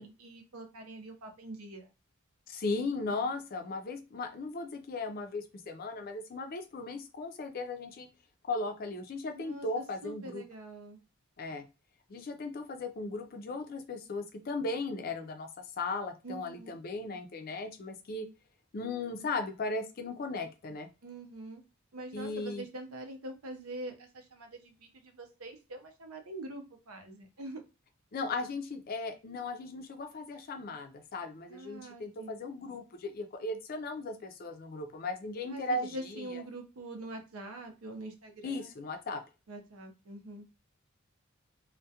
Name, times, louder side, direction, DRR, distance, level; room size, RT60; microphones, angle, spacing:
voice 1, 0.0-1.9 9.3-11.0 16.2-16.8 21.0-21.6 21.9-27.6 31.5-32.4 35.5-38.7 39.5-40.4, right 2 dB, 85° right, 4 dB, 0.6 m, -44 dB
voice 2, 2.5-8.1 8.4-10.4 11.4-11.7 12.1-15.5 15.8-18.3 18.7-20.9 22.1-22.6 28.1-36.4 38.4-39.2, left 3 dB, 45° left, 6 dB, 0.4 m, -37 dB
2.3 x 2.1 x 2.7 m, 0.29 s
head